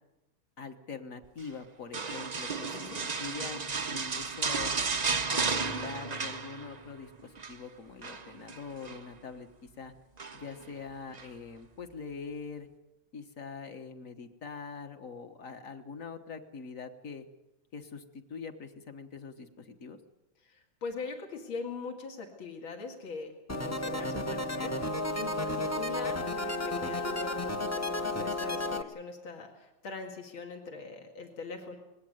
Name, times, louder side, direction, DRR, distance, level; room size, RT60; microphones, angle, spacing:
voice 1, 0.6-3.6 3.9-4.7 5.3-9.9 10.3-12.7 13.1-17.3 17.7-20.0, left 5 dB, 45° left, 7 dB, 1.5 m, -43 dB
sound 1, 1.9-6.9 7.2-7.6 8.0-9.0 10.2-10.6 11.1-11.3, right 4 dB, 85° right, 0.3 m, -33 dB
voice 2, 20.4-23.3 23.6-31.8, left 4 dB, 80° left, 3 dB, 3.1 m, -42 dB
sound 2, 23.5-28.8, left 2 dB, 20° left, 0.4 m, -32 dB
20.5 x 16.5 x 9.3 m, 0.97 s
omnidirectional pair, 2.2 m